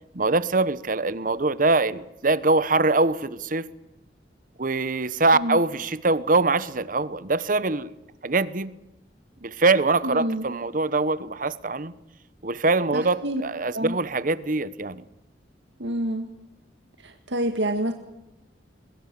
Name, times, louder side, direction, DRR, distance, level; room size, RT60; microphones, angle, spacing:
voice 1, 0.1-3.7 4.6-7.9 8.2-8.7 9.4-11.9 12.4-15.0, right 3 dB, 50° right, 17 dB, 1.1 m, -23 dB
voice 2, 10.0-10.5 12.9-13.4 13.7-14.0 15.8-16.3 17.0-17.9, right 1 dB, 85° right, 6 dB, 1.8 m, -27 dB
22.0 x 22.0 x 7.6 m, 0.92 s
head